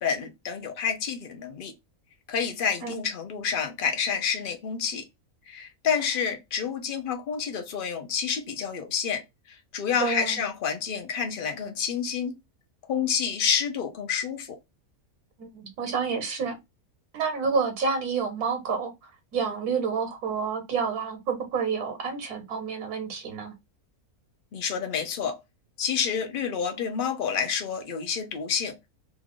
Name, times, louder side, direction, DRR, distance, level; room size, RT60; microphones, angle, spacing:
voice 1, 0.0-1.7 2.3-5.0 5.5-9.2 9.5-12.4 12.9-14.6 24.5-25.4 25.8-28.7, left 7 dB, 45° left, 0.7 m, -29 dB
voice 2, 10.0-10.4 15.4-16.6 17.1-23.5, right 5 dB, 80° right, 1.4 m, -29 dB
3.1 x 2.4 x 3.6 m
omnidirectional pair, 1.6 m